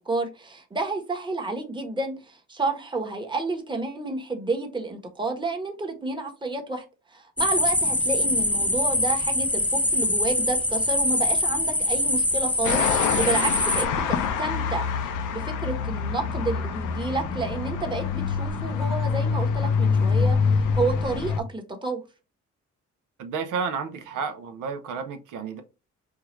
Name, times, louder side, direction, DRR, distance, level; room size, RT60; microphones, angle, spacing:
voice 1, 0.0-6.8 7.1-20.5 20.8-22.0, right 3 dB, 15° right, 1.0 m, -30 dB
sound 1, 7.4-13.8, left 1 dB, 5° left, 0.4 m, -24 dB
sound 2, 12.6-21.4, left 5 dB, 80° left, 0.7 m, -25 dB
voice 2, 23.2-25.6, right 5 dB, 80° right, 0.7 m, -31 dB
4.6 x 2.4 x 3.0 m
cardioid pair, 90°, 30 cm